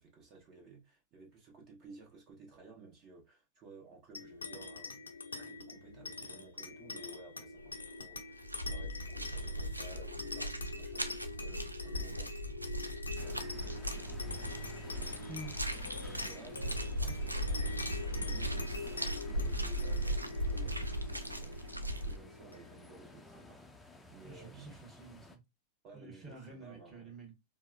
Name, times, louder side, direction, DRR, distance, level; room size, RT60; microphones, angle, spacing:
voice 1, 0.0-15.3 16.0-24.8 25.8-27.2, right 4 dB, 35° right, 1.2 m, -56 dB
sound 1, 4.1-23.0, left 3 dB, 80° left, 0.5 m, -45 dB
sound 2, 7.6-7.9 8.1-22.2, right 1 dB, 85° right, 0.4 m, -38 dB
sound 3, 13.2-25.4, left 1 dB, 5° left, 0.5 m, -54 dB
voice 2, 24.2-25.4 25.9-27.3, right 3 dB, 10° right, 1.1 m, -49 dB
4.4 x 2.0 x 2.2 m
figure-of-eight pair, 90°, 0 cm